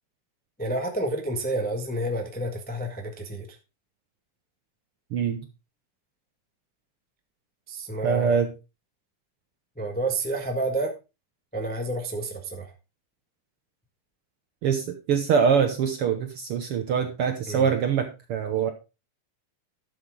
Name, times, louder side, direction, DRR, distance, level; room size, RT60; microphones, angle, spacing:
voice 1, 0.6-3.6 7.7-8.4 9.8-10.9 11.5-12.7 17.5-17.7, right 2 dB, 10° left, 2 dB, 0.4 m, -29 dB
voice 2, 5.1-5.4 8.0-8.5 14.6-18.7, right 7 dB, 70° right, 6 dB, 1.4 m, -24 dB
12.5 x 7.2 x 3.7 m, 0.29 s
omnidirectional pair, 3.6 m